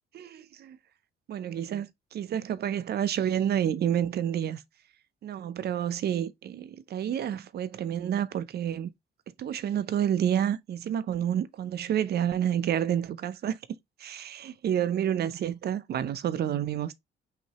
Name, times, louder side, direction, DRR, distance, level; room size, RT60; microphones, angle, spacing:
voice 1, 0.1-0.8 1.3-4.6 5.2-8.9 9.4-13.6 14.0-16.9, right 9 dB, 55° right, 0.5 m, -29 dB
5.8 x 2.7 x 2.9 m
cardioid pair, 90°, 20 cm